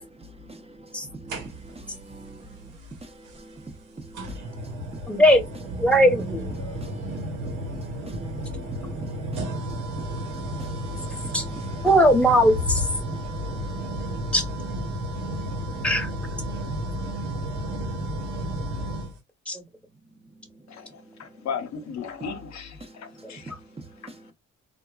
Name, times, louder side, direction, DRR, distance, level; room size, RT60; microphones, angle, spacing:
voice 1, 0.2-3.7 4.0-4.7 5.0-5.2 6.6-11.9 12.3-12.4 13.1-13.8 14.1-14.3 15.0-16.5 22.8-23.4 24.1-24.3, right 2 dB, 20° right, 0.7 m, -45 dB
sound 1, 1.3-1.9 3.3-3.4 4.1-19.2, equal, 90° right, 1.1 m, -32 dB
voice 2, 5.1-5.4 5.8-6.4 11.3-11.4 11.8-12.8 14.3-14.4 15.8-16.1 19.5-19.6, equal, 5° left, 1.0 m, -18 dB
voice 3, 21.2-23.5, left 6 dB, 65° left, 0.8 m, -35 dB
3.6 x 2.1 x 2.3 m
cardioid pair, 90°, 30 cm